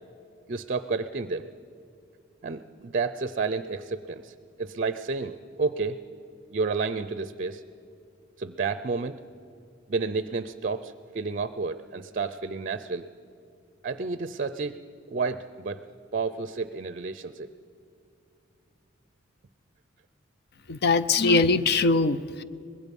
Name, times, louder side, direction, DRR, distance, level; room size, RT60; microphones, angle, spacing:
voice 1, 0.5-1.5 2.4-6.1 6.5-7.6 8.4-9.2 9.9-13.1 13.8-14.8 15.1-15.8 16.1-17.5, right 4 dB, 45° right, 13 dB, 0.5 m, -31 dB
voice 2, 20.7-22.4, left 3 dB, 55° left, 14 dB, 0.6 m, -22 dB
24.5 x 20.5 x 5.4 m, 2.5 s
head